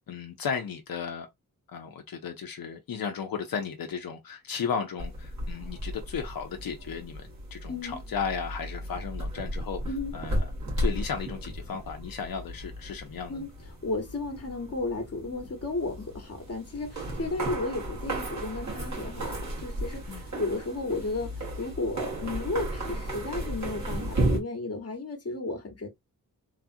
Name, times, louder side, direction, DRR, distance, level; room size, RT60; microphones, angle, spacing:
voice 1, 0.1-1.3 1.7-9.8 10.1-10.5 10.8-13.4 17.2-17.3 20.1-20.3, left 6 dB, 80° left, 0.6 m, -35 dB
sound 1, 5.0-24.4, right 1 dB, 55° right, 1.6 m, -34 dB
voice 2, 7.7-8.0 9.9-10.1 13.3-13.5 13.8-25.9, left 3 dB, 45° left, 1.1 m, -33 dB
3.3 x 2.4 x 2.5 m
wide cardioid pair, 75°, 35 cm